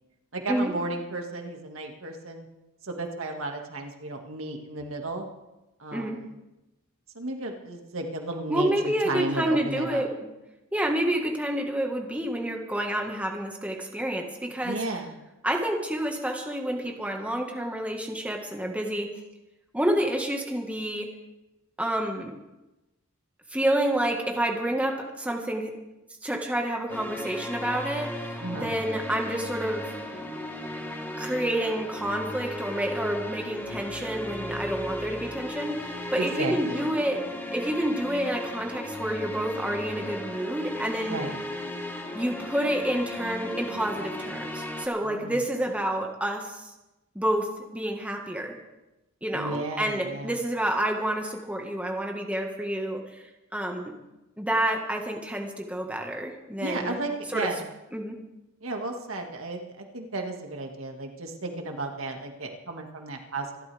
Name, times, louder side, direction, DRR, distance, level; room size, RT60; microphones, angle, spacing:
voice 1, 0.3-2.5 2.8-5.3 5.8-6.3 7.1-10.0 14.6-15.2 28.4-28.7 36.2-36.9 41.0-41.4 45.0-45.4 49.3-50.4 56.6-57.7 58.6-63.5, right 2 dB, 70° right, 2 dB, 2.1 m, -33 dB
voice 2, 8.5-10.1 10.7-14.8 15.4-19.1 19.7-21.1 21.8-22.4 23.5-25.7 26.2-29.9 31.2-37.2 37.5-41.2 42.1-46.7 47.1-48.5 49.2-53.9 54.4-57.0 57.3-57.5 57.9-58.1, right 1 dB, 5° right, 1 dB, 1.7 m, -29 dB
sound 1, 26.9-44.9, left 1 dB, 10° left, 1.7 m, -36 dB
26.5 x 12.5 x 3.5 m, 0.99 s
head